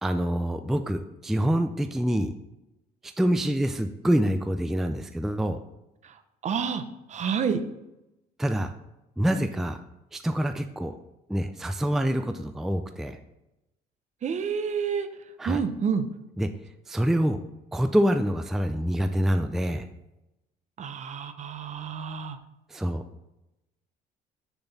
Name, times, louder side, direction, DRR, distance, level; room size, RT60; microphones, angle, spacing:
voice 1, 0.0-2.3 3.2-5.6 8.4-8.7 9.2-9.8 10.1-10.9 11.3-13.2 15.4-15.6 16.4-16.5 16.9-17.4 17.7-19.8 22.7-23.0, equal, ahead, 8 dB, 0.4 m, -26 dB
voice 2, 6.4-6.8 7.1-7.6 14.2-15.1 15.4-16.1 20.8-22.4, right 6 dB, 45° right, 9 dB, 0.8 m, -28 dB
6.9 x 5.9 x 4.1 m, 0.92 s
cardioid pair, 110°, 17 cm